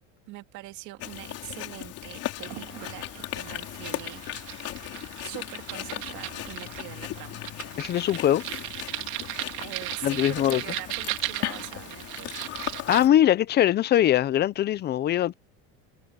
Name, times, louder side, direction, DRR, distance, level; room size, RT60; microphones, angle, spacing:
voice 1, 0.3-4.7 5.2-7.4 9.6-12.3, right 19 dB, 60° right, 2.4 m, -43 dB
Chewing mastication, 1.0-13.1, left 14 dB, 45° left, 3.8 m, -37 dB
sound 1, 2.4-13.0, right 22 dB, 90° right, 2.4 m, -37 dB
voice 2, 7.8-8.4 10.0-10.6 12.9-15.3, left 12 dB, 30° left, 0.6 m, -22 dB
cardioid pair, 145°, 33 cm